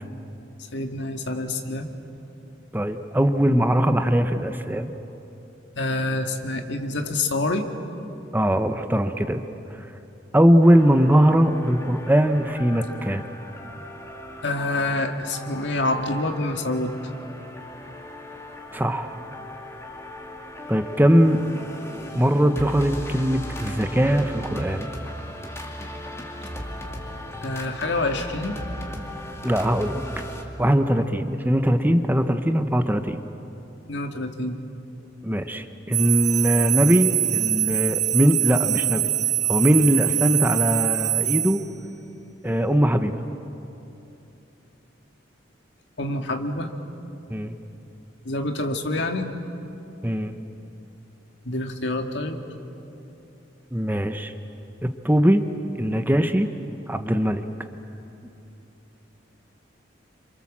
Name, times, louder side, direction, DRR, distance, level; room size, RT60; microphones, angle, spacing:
voice 1, 0.7-2.0 5.8-7.7 14.4-16.9 27.4-28.6 33.9-34.6 46.0-46.7 48.2-49.3 51.5-52.4, left 2 dB, 65° left, 5 dB, 2.0 m, -27 dB
voice 2, 2.7-4.9 8.3-9.4 10.3-13.2 18.7-19.1 20.7-21.4 22.1-24.9 29.4-30.0 30.6-33.2 35.2-39.1 39.5-41.6 42.4-43.2 47.3-47.6 50.0-50.4 53.7-54.3 54.8-55.4 55.7-56.5 56.9-57.4, equal, 10° right, 8 dB, 0.9 m, -20 dB
sound 1, 10.6-30.4, left 1 dB, 15° left, 2.4 m, -37 dB
sound 2, 35.9-41.7, right 14 dB, 35° right, 0.8 m, -23 dB
28.5 x 26.5 x 7.4 m, 2.9 s
head